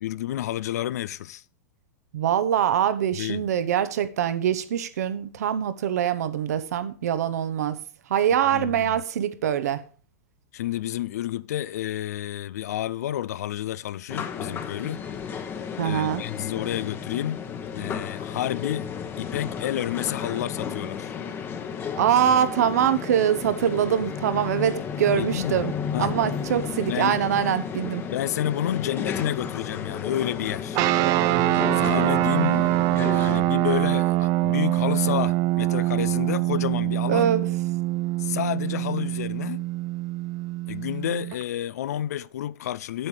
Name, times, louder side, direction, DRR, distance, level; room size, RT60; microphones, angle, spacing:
voice 1, 0.0-1.4 3.1-3.5 8.5-9.0 10.5-15.1 15.8-17.5 17.7-18.9 19.2-21.2 25.1-25.6 25.9-26.1 26.9-27.3 28.1-30.8 31.7-37.3 38.2-39.7 40.7-43.1, left 12 dB, 80° left, 0.4 m, -30 dB
voice 2, 2.1-7.8 8.1-9.8 15.8-16.2 22.0-25.7 26.0-28.0 31.0-31.9 37.1-37.5, right 9 dB, 75° right, 0.9 m, -24 dB
sound 1, 14.1-33.4, left 7 dB, 25° left, 1.0 m, -33 dB
sound 2, 30.7-41.4, right 17 dB, 45° right, 0.5 m, -24 dB
8.3 x 7.5 x 4.9 m
hypercardioid pair, 125°, 9 cm